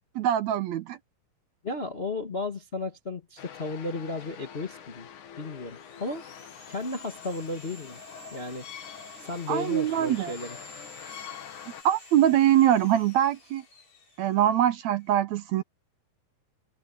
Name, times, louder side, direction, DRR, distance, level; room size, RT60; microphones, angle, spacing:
voice 1, 0.2-1.0 9.5-10.3 11.9-13.6 14.2-15.6, right 11 dB, 70° right, 1.8 m, -23 dB
voice 2, 1.6-5.1 5.4-6.2 6.7-8.0 8.3-8.7 9.2-10.6, left 2 dB, 35° left, 0.9 m, -34 dB
sound 1, 3.4-11.8, left 9 dB, 70° left, 3.2 m, -45 dB
Sawing, 5.3-15.1, left 2 dB, 90° left, 7.4 m, -51 dB
omnidirectional pair, 3.7 m